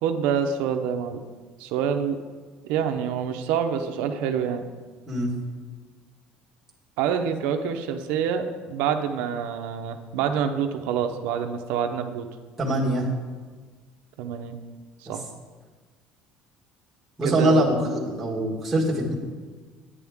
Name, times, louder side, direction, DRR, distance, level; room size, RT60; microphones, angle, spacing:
voice 1, 0.0-1.2 1.6-2.2 2.7-4.6 7.0-12.3 14.2-14.6 15.1-15.2 17.2-17.6, right 7 dB, 70° right, 6 dB, 0.8 m, -26 dB
voice 2, 12.6-13.1 15.1-15.2 17.2-19.1, right 1 dB, 5° right, -6 dB, 1.6 m, -23 dB
10.0 x 9.8 x 3.6 m, 1.4 s
cardioid pair, 175°, 3 cm